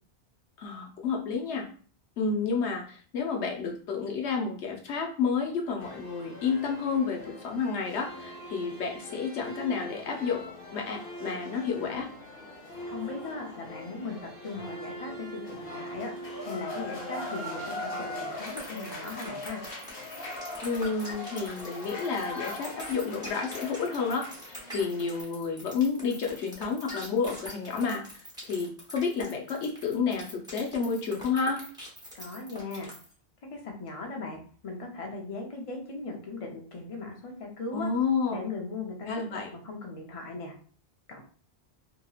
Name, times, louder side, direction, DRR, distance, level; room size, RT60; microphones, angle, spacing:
voice 1, 0.6-1.6 2.2-10.4 10.7-12.1 20.6-28.0 28.4-31.6 37.7-38.5 39.1-39.5, left 5 dB, 90° left, 1 dB, 1.0 m, -30 dB
sound 1, 5.8-25.2, left 1 dB, 60° left, 0.9 m, -40 dB
voice 2, 12.9-16.1 16.4-19.6 32.1-32.9 33.5-37.9 38.3-40.5 41.1-41.2, left 3 dB, 35° left, 1 dB, 0.6 m, -38 dB
sound 2, 18.5-33.1, equal, 5° right, 0.7 m, -44 dB
2.8 x 2.8 x 2.3 m, 0.43 s
omnidirectional pair, 1.1 m